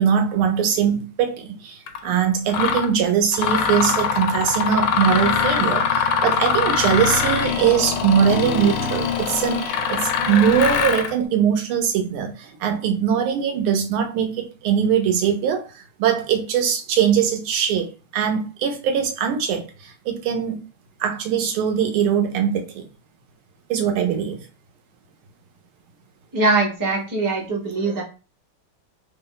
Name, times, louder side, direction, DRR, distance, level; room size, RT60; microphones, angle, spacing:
voice 1, 0.0-20.6 21.0-22.8 23.7-24.4, right 8 dB, 85° right, 1.6 m, -21 dB
Mechanisms, 1.9-2.0 2.5-2.9 3.3-11.1, left 6 dB, 90° left, 1.5 m, -22 dB
voice 2, 26.3-28.0, right 3 dB, 30° right, 0.3 m, -22 dB
3.7 x 2.1 x 3.8 m
omnidirectional pair, 2.3 m